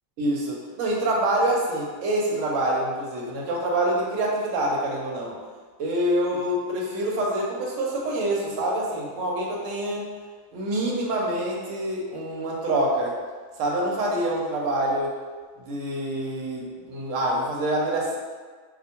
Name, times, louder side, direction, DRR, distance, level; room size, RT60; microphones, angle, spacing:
voice 1, 0.2-5.4 5.8-10.1 10.5-13.1 13.6-15.1 15.6-18.2, right 1 dB, 70° right, -2 dB, 0.9 m, -26 dB
2.3 x 2.1 x 2.8 m, 1.5 s
omnidirectional pair, 1.4 m